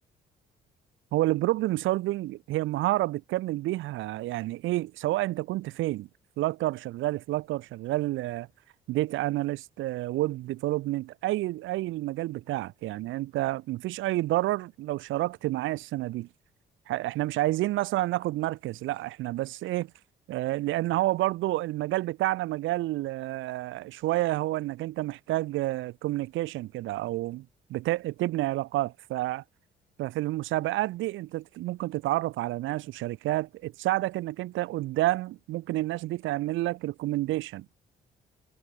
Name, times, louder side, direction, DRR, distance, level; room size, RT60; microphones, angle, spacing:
voice 1, 1.1-6.1 6.4-8.5 8.9-16.3 16.9-19.9 20.3-29.4 30.0-37.7, right 17 dB, 75° right, 0.7 m, -29 dB
supercardioid pair, 55°, 20 cm